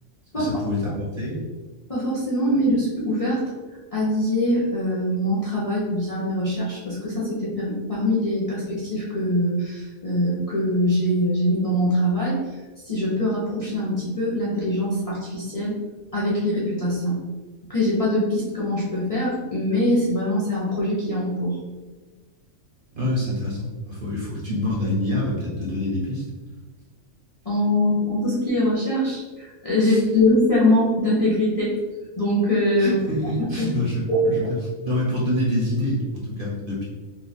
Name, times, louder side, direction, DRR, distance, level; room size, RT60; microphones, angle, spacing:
voice 1, 0.4-1.4 22.9-26.2 29.8-30.0 32.8-34.4 34.8-36.8, left 1 dB, 45° right, -5 dB, 1.0 m, -26 dB
voice 2, 1.9-3.5 3.9-12.4 12.8-15.7 16.1-17.2 17.7-21.6 27.4-31.7 32.2-33.0 33.6-33.7 34.1-34.5, left 1 dB, 35° left, -8 dB, 0.7 m, -23 dB
2.8 x 2.3 x 4.1 m, 1.3 s
omnidirectional pair, 1.3 m